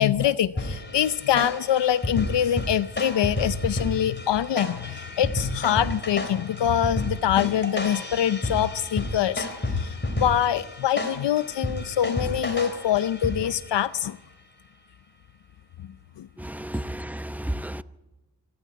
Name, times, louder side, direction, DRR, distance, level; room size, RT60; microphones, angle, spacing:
voice 1, 0.0-9.5 9.7-14.2 16.2-16.3, left 10 dB, 75° left, 0.6 m, -24 dB
sound 1, 0.6-13.7, left 1 dB, 25° left, 3.9 m, -31 dB
voice 2, 16.6-17.8, right 1 dB, 5° right, 0.7 m, -31 dB
25.5 x 13.0 x 9.4 m
cardioid pair, 65°, 42 cm